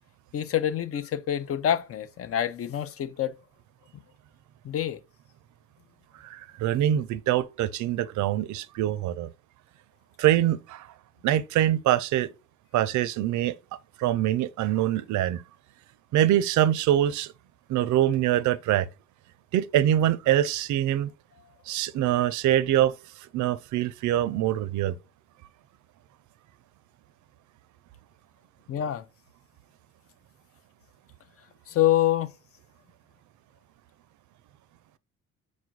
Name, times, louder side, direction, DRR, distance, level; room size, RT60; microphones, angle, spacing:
voice 1, 0.3-3.3 4.6-5.0 28.7-29.0 31.7-32.3, left 11 dB, 50° left, 0.5 m, -26 dB
voice 2, 6.2-9.3 10.2-10.9 11.2-12.3 12.7-13.5 14.0-15.4 16.1-17.3 17.7-18.9 19.5-21.1 21.7-22.9 23.3-25.0, right 12 dB, 75° right, 0.5 m, -24 dB
4.2 x 2.4 x 4.5 m
cardioid pair, 90°, 30 cm